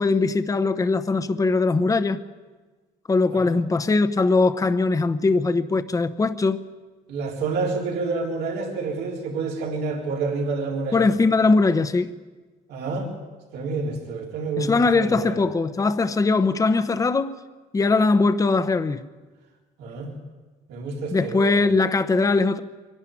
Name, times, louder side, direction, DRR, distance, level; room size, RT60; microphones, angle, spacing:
voice 1, 0.0-2.2 3.1-6.6 10.9-12.1 14.6-17.4 17.7-19.0 21.1-22.6, left 3 dB, 20° left, 0.9 m, -21 dB
voice 2, 7.1-11.1 12.7-13.1 13.5-15.4 19.8-20.1 20.7-21.6, right 3 dB, 80° right, 4.0 m, -28 dB
23.0 x 12.0 x 9.8 m
cardioid pair, 110°, 17 cm